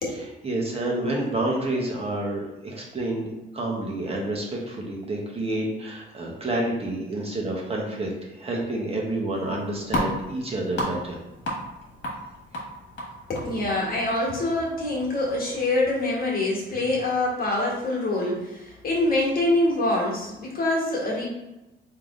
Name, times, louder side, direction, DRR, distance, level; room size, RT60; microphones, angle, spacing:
voice 1, 0.1-3.3 3.5-11.2, right 1 dB, 30° right, -2 dB, 1.0 m, -29 dB
sound 1, 9.3-16.1, equal, 70° left, 1.4 m, -35 dB
voice 2, 13.3-21.3, left 2 dB, 50° left, -3 dB, 1.4 m, -25 dB
3.5 x 2.8 x 3.6 m, 0.97 s
cardioid pair, 90°, 20 cm